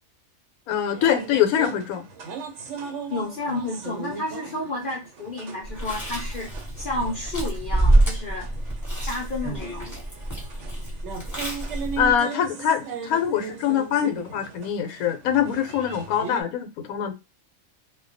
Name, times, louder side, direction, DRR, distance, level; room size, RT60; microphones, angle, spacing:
voice 1, 0.7-2.1 12.0-17.1, left 9 dB, 80° left, 1.0 m, -24 dB
sound 1, 0.9-16.4, right 5 dB, 65° right, 0.8 m, -38 dB
voice 2, 3.1-6.5 6.8-8.5 9.0-9.9, left 2 dB, 65° left, 0.5 m, -31 dB
Chewing mastication, 5.6-12.2, right 1 dB, 15° left, 1.0 m, -26 dB
2.3 x 2.2 x 2.5 m
omnidirectional pair, 1.5 m